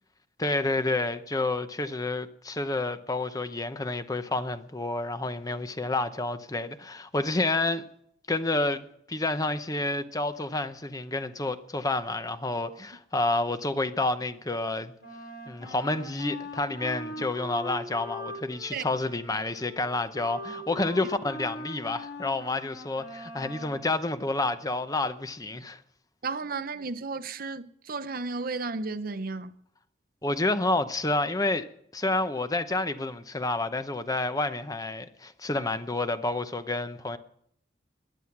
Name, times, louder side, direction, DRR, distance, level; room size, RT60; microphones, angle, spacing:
voice 1, 0.4-7.8 8.3-14.9 15.5-25.8 30.2-31.7 31.9-37.2, left 2 dB, 20° left, 0.8 m, -29 dB
Wind instrument woodwind instrument, 15.0-23.9, left 1 dB, 70° left, 6.0 m, -41 dB
voice 2, 26.2-29.5, right 4 dB, 55° right, 0.8 m, -33 dB
18.0 x 11.0 x 6.0 m
head